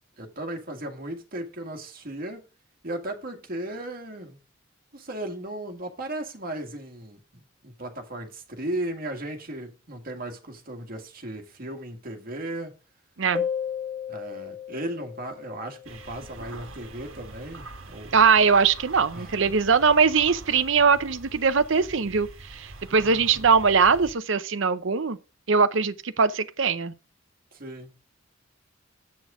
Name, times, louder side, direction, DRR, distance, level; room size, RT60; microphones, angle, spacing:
voice 1, 0.2-2.4 2.8-4.4 4.9-12.7 14.1-18.2 19.1-19.3 23.0-23.5 27.5-27.9, right 1 dB, 45° right, 1.8 m, -36 dB
sound 1, 13.4-16.6, left 7 dB, 10° right, 1.7 m, -34 dB
sound 2, 15.8-24.1, right 2 dB, 90° right, 1.3 m, -44 dB
voice 2, 18.1-25.2 25.5-26.9, right 5 dB, 65° right, 0.7 m, -21 dB
8.7 x 6.2 x 4.9 m
head